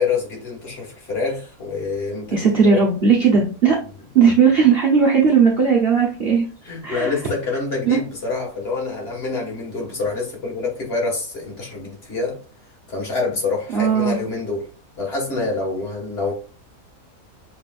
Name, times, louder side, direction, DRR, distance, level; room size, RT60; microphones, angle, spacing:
voice 1, 0.0-2.4 2.7-2.8 6.7-12.4 12.9-14.7 15.0-16.3, left 3 dB, 40° left, 2.0 m, -26 dB
voice 2, 2.3-3.8 4.1-6.4 6.8-7.1 7.8-8.0 13.7-14.2, right 6 dB, 45° right, 1.0 m, -16 dB
6.5 x 3.3 x 2.4 m
omnidirectional pair, 1.6 m